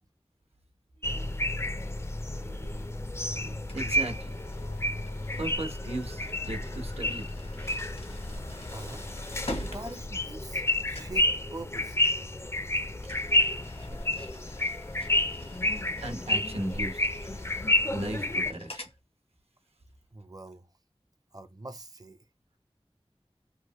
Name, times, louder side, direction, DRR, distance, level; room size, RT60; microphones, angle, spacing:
sound 1, 1.0-18.5, left 1 dB, 25° left, 0.4 m, -30 dB
voice 1, 1.0-1.5 1.8-1.9 2.3-2.9 3.4-4.4 5.4-7.4 16.0-17.1 17.9-18.9, right 1 dB, 75° right, 0.9 m, -37 dB
sound 2, 3.7-10.7 10.9-11.3 13.0-19.0, left 1 dB, 80° left, 1.1 m, -46 dB
voice 2, 8.7-9.1 9.6-12.0 20.1-20.7 21.3-22.3, right 2 dB, 35° right, 0.5 m, -44 dB
3.2 x 2.1 x 2.9 m
wide cardioid pair, 45°, 10 cm